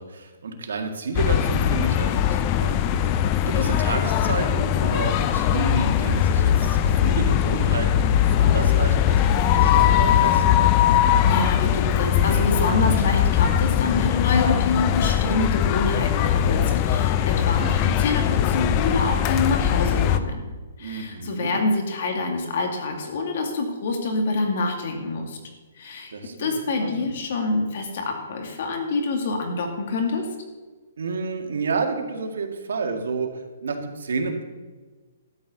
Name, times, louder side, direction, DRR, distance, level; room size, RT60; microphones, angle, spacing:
voice 1, 0.0-2.8 3.4-10.6 20.8-21.6 26.1-26.5 26.8-27.1 31.0-34.4, right 4 dB, 90° right, 3 dB, 2.0 m, -30 dB
sound 1, 1.1-20.2, left 10 dB, 25° left, 0.5 m, -20 dB
voice 2, 11.2-20.4 20.8-25.4 25.8-26.1 26.4-30.3, left 3 dB, 50° left, 3 dB, 2.2 m, -26 dB
12.5 x 5.5 x 8.1 m, 1.3 s
hypercardioid pair, 170°, 0 cm